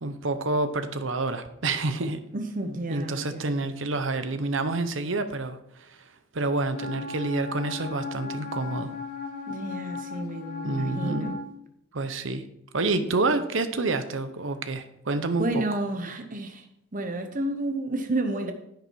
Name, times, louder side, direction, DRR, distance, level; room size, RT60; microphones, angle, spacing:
voice 1, 0.0-2.2 2.9-6.0 6.3-8.9 10.6-11.4 11.9-12.4 12.7-15.6, right 3 dB, 80° right, 10 dB, 1.0 m, -28 dB
voice 2, 2.3-3.5 9.5-11.4 13.0-13.1 15.4-16.7 16.9-18.5, right 1 dB, 45° right, 6 dB, 0.9 m, -31 dB
Wind instrument woodwind instrument, 6.7-11.5, left 4 dB, 45° left, 4.2 m, -36 dB
10.5 x 8.5 x 4.7 m, 0.77 s
head